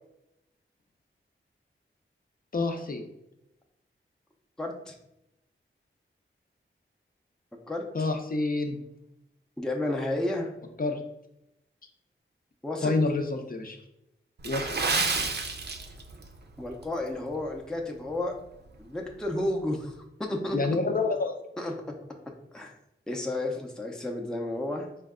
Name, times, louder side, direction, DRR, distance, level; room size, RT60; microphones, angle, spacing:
voice 1, 2.5-3.0 7.9-8.8 10.8-11.0 12.8-13.8 14.4-15.0 20.5-21.3, left 3 dB, 45° left, 4 dB, 0.6 m, -28 dB
voice 2, 4.6-4.9 7.7-7.9 9.6-10.5 12.6-12.9 16.6-18.3 18.8-20.0 20.3-20.6 21.6-21.7 22.5-22.7 23.1-24.9, left 1 dB, 5° left, 0 dB, 0.5 m, -31 dB
Water / Splash splatter, 14.4-16.3 16.6-16.8 17.4-17.6 18.1-18.2, right 4 dB, 50° right, 0.5 m, -29 dB
4.4 x 2.2 x 3.6 m, 0.87 s
wide cardioid pair, 70°, 21 cm